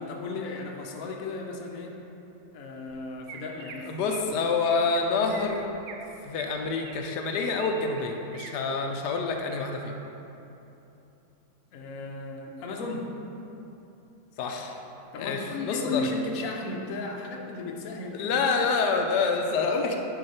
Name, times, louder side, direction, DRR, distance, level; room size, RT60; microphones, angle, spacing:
voice 1, 0.0-2.0 2.5-4.4 11.7-13.1 15.1-18.3, left 3 dB, 60° left, 0 dB, 1.2 m, -35 dB
Chirp tweet, 2.9-3.0 3.3-3.8 4.1-4.3 4.6-5.0 5.3-6.0 6.4-7.7 8.0-8.5 8.9-9.2 9.6-10.0, right 6 dB, 80° right, 1.2 m, -45 dB
voice 2, 3.8-5.7 6.2-9.9 14.4-14.8 15.1-16.1 18.1-20.0, left 4 dB, 90° left, 3 dB, 1.2 m, -27 dB
9.3 x 4.7 x 4.3 m, 3.0 s
omnidirectional pair, 1.7 m